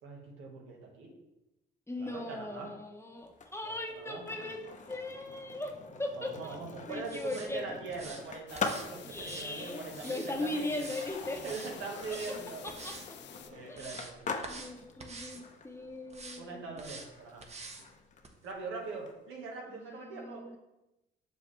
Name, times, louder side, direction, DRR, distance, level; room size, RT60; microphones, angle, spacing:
voice 1, 0.0-1.1 2.0-2.7 3.6-4.2 6.1-10.9 11.4-12.6 13.5-14.2 16.4-17.4 18.4-20.4, right 4 dB, 90° right, -1 dB, 1.6 m, -42 dB
voice 2, 1.9-5.7 6.0-6.6 6.9-7.6 9.0-11.4 12.8-12.9 13.7-14.1 14.5-16.6 19.7-20.6, left 2 dB, 15° left, 3 dB, 1.0 m, -39 dB
Skateboard, 3.3-19.1, left 4 dB, 40° left, 0.8 m, -44 dB
sound 1, 7.0-7.5 7.9-8.2 8.5-8.9 9.2-10.3 10.7-11.1 11.3-11.7 12.0-12.4 12.7-13.1 13.5-14.1 14.4-14.7 15.0-15.4 16.1-16.4 16.8-17.1 17.4-17.8 18.2-18.3, right 3 dB, 35° right, 1.0 m, -46 dB
sound 2, 8.5-13.5, left 9 dB, 65° left, 0.6 m, -51 dB
6.6 x 5.2 x 3.3 m, 0.95 s
cardioid pair, 90°, 20 cm